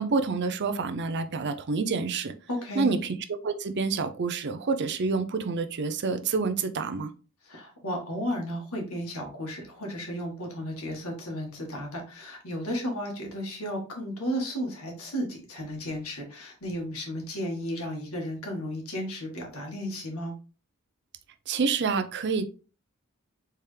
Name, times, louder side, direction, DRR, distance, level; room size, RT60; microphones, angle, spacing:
voice 1, 0.0-2.3 2.8-7.1 21.5-22.5, right 4 dB, 55° right, 10 dB, 0.5 m, -28 dB
voice 2, 2.5-2.9 7.4-20.3, equal, 90° left, 1 dB, 1.7 m, -34 dB
4.4 x 3.5 x 3.3 m, 0.35 s
head